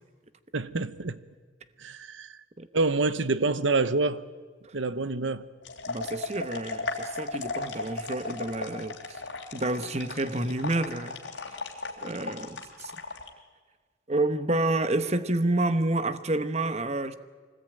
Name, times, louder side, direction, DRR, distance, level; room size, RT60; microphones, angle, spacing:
voice 1, 0.5-1.2 1.8-2.3 2.7-4.2 4.7-5.5, right 3 dB, 85° right, 0.9 m, -27 dB
sound 1, 5.6-13.3, left 3 dB, 85° left, 3.3 m, -36 dB
voice 2, 5.9-9.2 9.5-11.2 11.5-11.6 12.0-12.9 14.1-17.1, right 2 dB, 35° right, 1.0 m, -29 dB
24.5 x 19.5 x 9.0 m
head